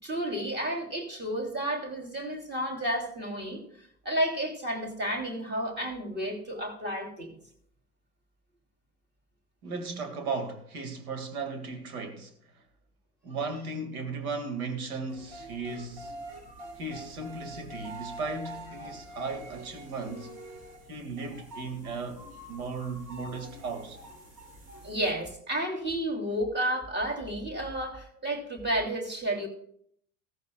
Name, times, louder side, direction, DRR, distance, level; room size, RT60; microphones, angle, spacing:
voice 1, 0.0-7.3 16.5-16.7 24.8-29.5, right 1 dB, 20° right, 3.0 m, -31 dB
voice 2, 9.6-12.6 13.2-16.2 16.8-20.3 20.9-22.2 22.5-24.0, right 4 dB, 65° right, 2.1 m, -36 dB
sound 1, 15.1-25.1, right 1 dB, 45° right, 3.7 m, -45 dB
16.0 x 14.0 x 2.3 m
figure-of-eight pair, 80°, 47 cm